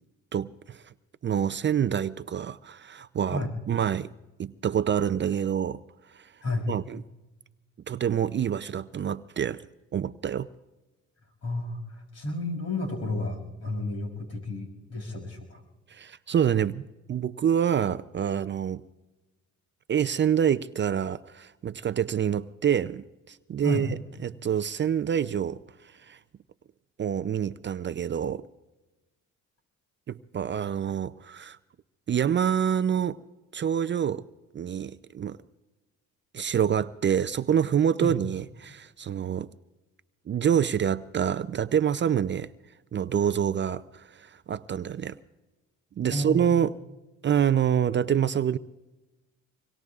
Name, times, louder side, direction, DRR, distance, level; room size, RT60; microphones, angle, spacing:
voice 1, 0.3-0.8 1.2-4.1 4.4-5.8 6.1-6.3 6.7-7.0 7.9-9.6 9.9-10.5 15.9-16.8 17.1-18.8 19.9-25.6 26.1-26.2 27.0-28.4 30.1-31.6 32.1-33.2 33.5-34.2 34.5-35.4 36.3-39.5 40.3-42.5 42.9-45.2 46.0-46.7 47.2-48.6, right 8 dB, 40° right, 0.5 m, -26 dB
voice 2, 11.4-15.6 23.6-23.9 38.0-38.1 46.1-46.5, left 2 dB, 55° left, 6.3 m, -31 dB
25.5 x 22.5 x 2.4 m
cardioid pair, 90°, 30 cm